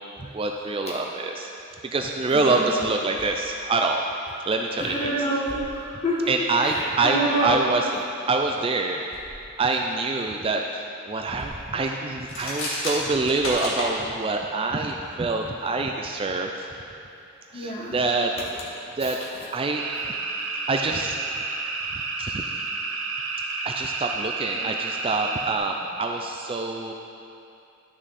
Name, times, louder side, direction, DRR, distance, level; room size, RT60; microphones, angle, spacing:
voice 1, 0.2-1.5 1.9-4.0 4.5-5.2 6.3-9.0 9.6-16.8 17.5-18.3 19.0-19.2 19.5-19.8 20.7-21.2 22.2-22.6 23.6-26.9, right 3 dB, 25° right, 3 dB, 0.3 m, -26 dB
voice 2, 2.3-2.7 4.8-6.3 6.6-7.7 17.5-18.0 19.0-19.3 24.5-24.6, equal, 30° left, -5 dB, 1.6 m, -27 dB
sound 1, 3.1-3.5 4.3-4.4 5.4-6.1 6.7-6.9 9.1-9.5 10.2-10.3 11.3-11.8 12.3-12.4 13.3-13.9, equal, 5° right, 0.9 m, -45 dB
sound 2, 12.2-13.9, left 1 dB, 65° left, 1.9 m, -30 dB
sound 3, 19.7-25.6, right 4 dB, 80° right, 0.8 m, -30 dB
11.0 x 6.2 x 4.1 m, 2.6 s
head